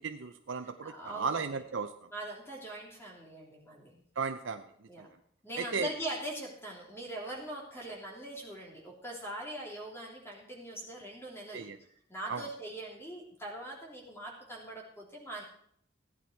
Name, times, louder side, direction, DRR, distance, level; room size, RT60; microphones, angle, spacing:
voice 1, 0.0-1.9 4.2-4.6 5.0-5.1 5.6-5.9 11.5-11.8 12.3-12.4, right 5 dB, 75° right, 7 dB, 0.7 m, -35 dB
voice 2, 0.8-1.6 2.1-4.0 4.9-5.1 5.4-11.7 12.1-15.4, right 1 dB, 10° left, -2 dB, 3.2 m, -42 dB
15.5 x 10.0 x 4.5 m, 0.66 s
head